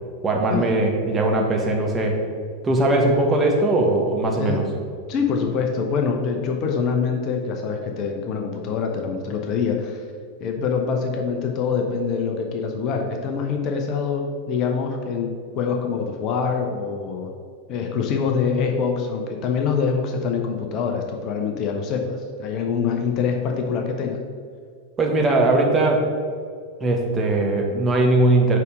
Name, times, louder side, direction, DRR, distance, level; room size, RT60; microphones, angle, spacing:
voice 1, 0.2-2.2 2.6-4.6 25.0-26.1 26.8-28.6, right 2 dB, 15° right, 0 dB, 1.3 m, -20 dB
voice 2, 5.1-10.0 10.4-17.3 17.7-24.2, left 5 dB, 35° left, 3 dB, 0.8 m, -25 dB
6.9 x 5.1 x 5.0 m, 2.1 s
figure-of-eight pair, 90°, 0 cm